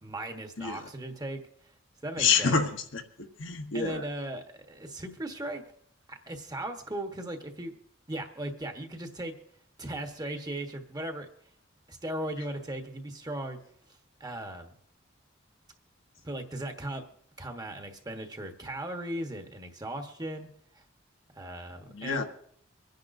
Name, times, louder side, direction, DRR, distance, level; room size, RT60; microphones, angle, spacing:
voice 1, 0.0-1.4 2.0-2.6 3.7-5.6 6.1-7.7 8.1-9.3 9.8-11.3 11.9-13.6 14.2-14.7 16.2-17.0 17.4-20.5 20.7-20.8 21.3-22.2, right 1 dB, 20° right, 5 dB, 1.2 m, -37 dB
voice 2, 0.6-0.9 2.2-4.1 21.9-22.2, left 5 dB, 70° left, 5 dB, 1.1 m, -28 dB
25.0 x 10.5 x 2.6 m, 0.65 s
head